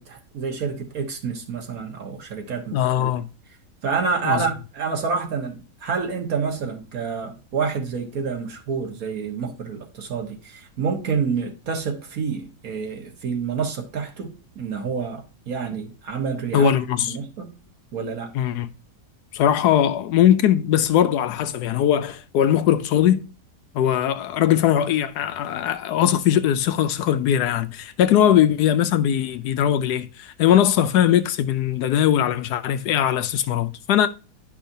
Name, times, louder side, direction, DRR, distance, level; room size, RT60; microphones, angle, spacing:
voice 1, 0.0-3.1 3.8-16.7 17.0-17.5 17.9-18.3, right 5 dB, 60° right, 1.6 m, -28 dB
voice 2, 2.7-3.3 4.2-4.4 16.5-17.1 18.3-18.7 19.3-23.2 23.7-34.1, left 10 dB, 75° left, 1.1 m, -20 dB
10.5 x 5.5 x 2.6 m
omnidirectional pair, 1.8 m